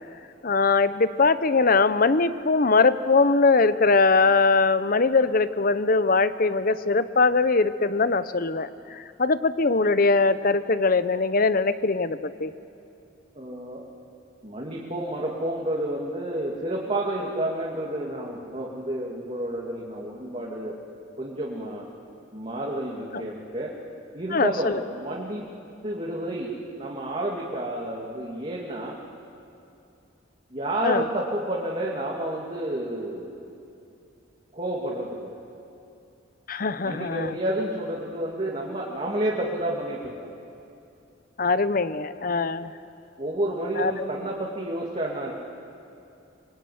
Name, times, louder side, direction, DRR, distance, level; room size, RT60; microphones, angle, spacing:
voice 1, 0.4-12.5 23.1-23.2 24.3-24.8 30.8-31.1 36.5-37.4 41.4-42.7 43.8-43.9, left 3 dB, 50° left, 13 dB, 0.8 m, -21 dB
voice 2, 13.4-13.8 14.4-20.8 21.2-21.8 22.3-23.7 24.1-25.5 25.8-26.5 26.8-29.0 30.5-33.5 34.5-35.3 36.8-40.3 43.2-45.3, right 1 dB, 35° right, -4 dB, 2.6 m, -30 dB
25.5 x 23.0 x 9.5 m, 2.6 s
head